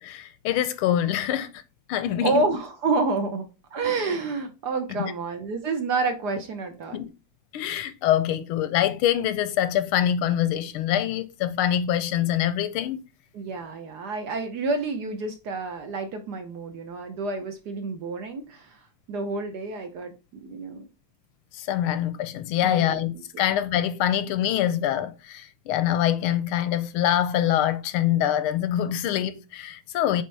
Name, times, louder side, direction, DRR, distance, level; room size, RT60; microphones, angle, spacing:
voice 1, 0.0-1.5 1.9-2.5 6.9-7.1 7.5-13.0 21.5-30.2, left 11 dB, 85° left, 1.5 m, -25 dB
voice 2, 2.2-3.4 3.7-7.0 13.3-18.8 19.1-20.1 20.4-20.8 22.6-22.8 23.3-23.4, right 3 dB, 60° right, 1.2 m, -29 dB
8.5 x 3.6 x 3.3 m
omnidirectional pair, 2.4 m